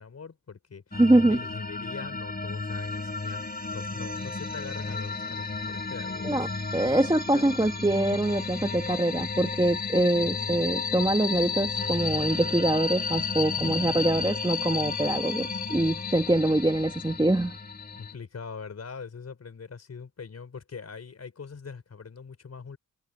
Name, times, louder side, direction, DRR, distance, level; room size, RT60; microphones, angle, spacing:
voice 1, 0.0-1.0 1.3-3.4 3.7-6.5 6.7-6.9 7.3-7.4 13.5-14.2 17.9-22.8, left 5 dB, 55° left, 4.8 m, -42 dB
sound 1, 0.9-18.1, left 4 dB, 30° left, 2.5 m, -33 dB
voice 2, 1.0-1.4 6.2-6.5 6.7-17.6, right 1 dB, 15° right, 2.3 m, -24 dB
cardioid pair, 55°, 30 cm